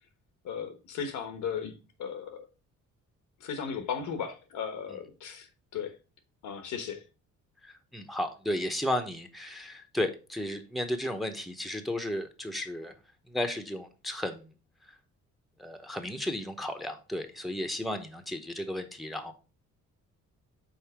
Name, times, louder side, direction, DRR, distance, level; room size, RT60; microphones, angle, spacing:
voice 1, 0.4-2.5 3.4-5.5 5.7-6.0 6.4-7.0, left 7 dB, 80° left, 1.3 m, -36 dB
voice 2, 7.6-12.9 13.3-14.5 15.6-19.3, left 1 dB, ahead, 0.9 m, -34 dB
5.6 x 4.0 x 4.8 m
cardioid pair, 90°, 30 cm